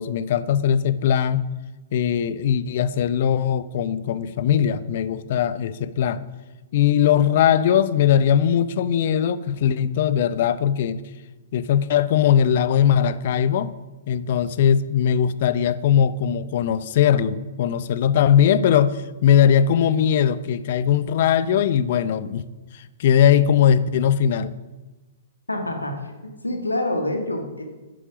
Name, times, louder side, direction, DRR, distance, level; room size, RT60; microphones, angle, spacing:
voice 1, 0.0-1.5 1.9-6.2 6.7-11.0 11.5-13.7 14.1-22.4 22.7-24.5, left 9 dB, 50° left, 16 dB, 0.6 m, -20 dB
voice 2, 25.5-26.0 26.4-27.6, left 1 dB, 90° left, 4 dB, 1.6 m, -26 dB
10.0 x 9.9 x 5.9 m, 1.2 s
figure-of-eight pair, 115°, 0 cm